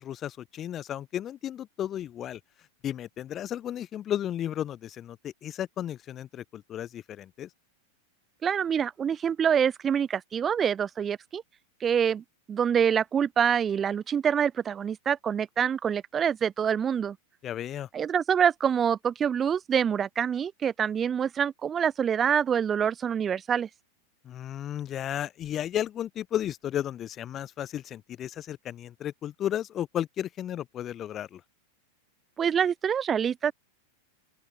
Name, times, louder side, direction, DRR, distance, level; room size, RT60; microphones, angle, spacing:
voice 1, 0.0-2.4 2.8-7.5 17.4-17.9 24.2-31.4, left 11 dB, 30° left, 0.7 m, -34 dB
voice 2, 8.4-11.4 11.8-17.2 17.9-23.7 32.4-33.5, right 8 dB, 20° right, 0.5 m, -26 dB
open air
figure-of-eight pair, 90°, 0 cm